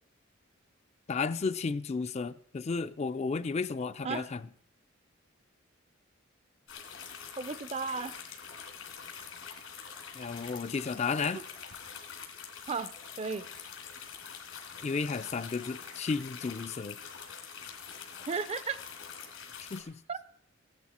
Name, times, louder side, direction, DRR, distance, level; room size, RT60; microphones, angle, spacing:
voice 1, 1.1-4.5 10.1-11.4 14.8-17.0 19.6-19.9, left 4 dB, 35° left, 12 dB, 0.4 m, -33 dB
sound 1, 6.7-19.8, left 7 dB, 85° left, 2.8 m, -45 dB
voice 2, 7.4-8.1 11.3-11.4 12.7-13.5 18.2-18.8 20.1-20.2, right 5 dB, 30° right, 15 dB, 0.5 m, -34 dB
16.0 x 10.5 x 4.2 m, 0.68 s
head